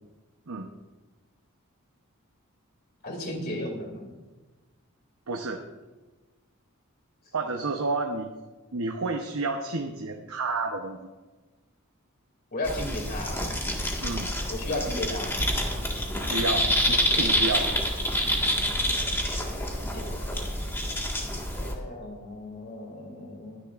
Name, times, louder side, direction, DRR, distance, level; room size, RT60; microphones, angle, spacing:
voice 1, 3.0-4.1 12.5-13.4 14.5-15.4 19.6-20.2 21.5-23.6, left 1 dB, 45° left, 2 dB, 2.6 m, -34 dB
voice 2, 5.3-5.6 7.3-8.3 8.7-11.1 14.0-14.3 16.3-17.7, right 3 dB, 75° right, 3 dB, 0.9 m, -30 dB
sound 1, 12.6-21.7, equal, 10° left, 1.7 m, -27 dB
23.0 x 10.0 x 2.5 m, 1.2 s
head